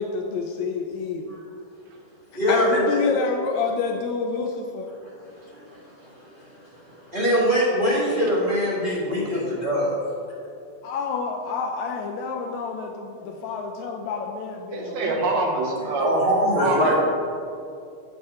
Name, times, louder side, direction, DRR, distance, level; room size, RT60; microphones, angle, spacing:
voice 1, 0.0-1.4 2.5-4.9 10.8-15.2, left 5 dB, 80° left, 3 dB, 1.7 m, -28 dB
voice 2, 2.3-3.0 5.2-6.5 7.1-9.9 16.0-16.9, equal, 25° right, -7 dB, 1.1 m, -23 dB
voice 3, 14.7-16.1 16.6-16.9, right 3 dB, 70° right, 0 dB, 2.0 m, -25 dB
8.8 x 8.0 x 3.7 m, 2.5 s
omnidirectional pair, 3.6 m